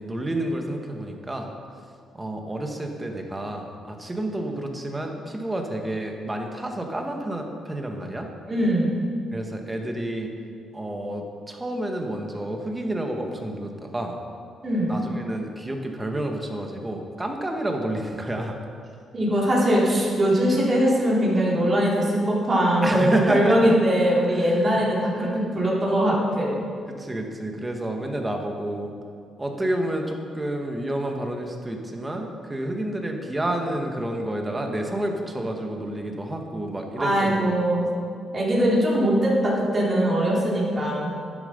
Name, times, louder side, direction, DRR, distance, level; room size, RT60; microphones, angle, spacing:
voice 1, 0.0-1.5 2.1-8.3 9.3-10.3 10.7-14.2 14.9-18.6 22.8-23.8 24.3-24.8 26.9-28.9 29.4-37.5, right 1 dB, 15° right, 3 dB, 1.6 m, -29 dB
voice 2, 8.5-9.0 14.6-15.0 19.1-25.3 25.5-26.6 37.0-37.9 38.3-41.1, equal, 35° right, -5 dB, 3.6 m, -21 dB
12.0 x 9.3 x 5.3 m, 2.3 s
cardioid pair, 90°, 0 cm